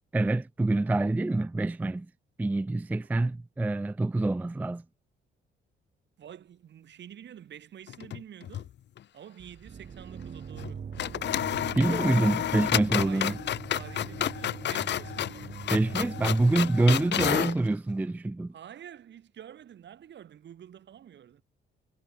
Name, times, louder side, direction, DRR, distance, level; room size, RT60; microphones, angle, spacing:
voice 1, 0.1-2.1 2.4-4.8 11.7-13.3 15.7-18.5, right 2 dB, 10° right, 0.3 m, -26 dB
voice 2, 6.2-8.7 9.1-10.9 13.0-15.6 18.5-21.4, right 9 dB, 65° right, 6.3 m, -48 dB
sound 1, 7.9-8.7 9.0-9.1 10.6-10.7 11.0-17.6, left 11 dB, 60° left, 1.0 m, -31 dB
sound 2, 9.4-17.2, right 7 dB, 45° right, 2.4 m, -43 dB
cardioid pair, 90°, 20 cm